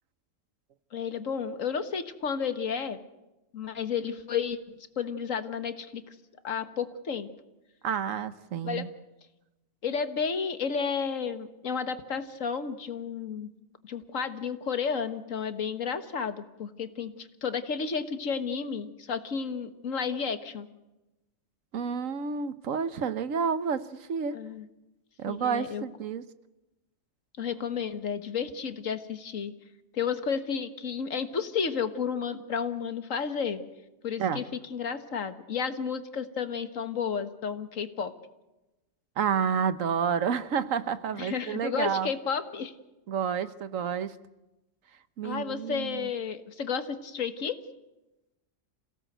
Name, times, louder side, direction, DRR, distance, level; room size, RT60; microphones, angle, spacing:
voice 1, 0.9-3.0 3.5-4.6 5.0-6.2 6.4-7.3 8.6-8.8 9.8-13.5 13.8-20.7 24.3-24.7 25.3-25.8 27.4-29.5 29.9-33.6 34.0-38.1 41.1-42.7 45.2-47.6, left 6 dB, 85° left, 10 dB, 1.8 m, -32 dB
voice 2, 7.8-8.9 21.7-24.4 25.2-26.2 34.2-34.4 39.2-42.1 43.1-44.1 45.2-46.1, right 7 dB, 85° right, 13 dB, 1.4 m, -30 dB
27.0 x 17.0 x 8.0 m, 0.98 s
omnidirectional pair, 1.3 m